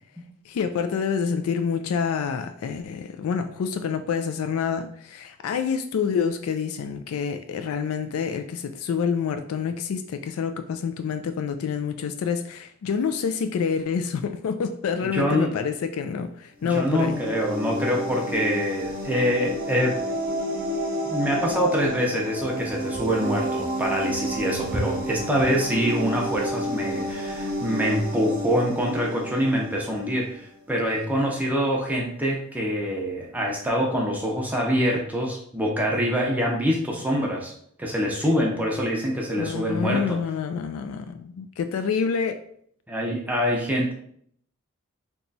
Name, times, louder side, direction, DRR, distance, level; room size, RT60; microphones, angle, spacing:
voice 1, 0.5-17.2 39.4-42.4, left 6 dB, 85° left, 8 dB, 0.3 m, -27 dB
voice 2, 15.1-15.5 16.6-20.0 21.1-37.5 37.8-40.2 42.9-43.9, equal, 5° right, -2 dB, 0.5 m, -25 dB
sound 1, 16.6-30.2, equal, 45° right, 0.7 m, -31 dB
3.0 x 2.3 x 3.9 m, 0.64 s
head